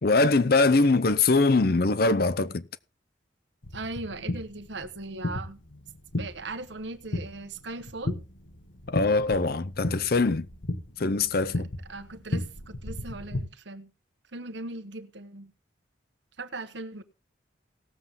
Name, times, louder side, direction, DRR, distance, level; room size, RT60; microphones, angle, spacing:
voice 1, 0.0-2.6 8.9-10.5 11.0-11.7, left 3 dB, 55° left, 0.6 m, -22 dB
sound 1, 3.6-13.4, left 1 dB, 90° left, 1.8 m, -35 dB
voice 2, 3.7-5.6 6.1-8.2 11.9-13.9 14.3-15.5 16.4-17.0, right 2 dB, 70° right, 1.2 m, -38 dB
18.5 x 7.4 x 3.6 m
head